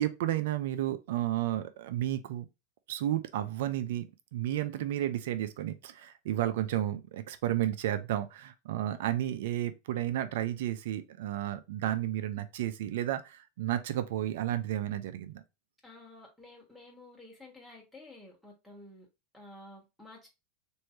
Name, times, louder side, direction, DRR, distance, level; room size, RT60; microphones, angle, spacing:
voice 1, 0.0-2.5 2.9-4.0 4.3-15.4, right 12 dB, 70° right, 0.5 m, -32 dB
voice 2, 15.8-19.1 19.3-20.3, left 2 dB, 5° left, 1.5 m, -52 dB
3.2 x 2.7 x 4.3 m
hypercardioid pair, 100°, 0 cm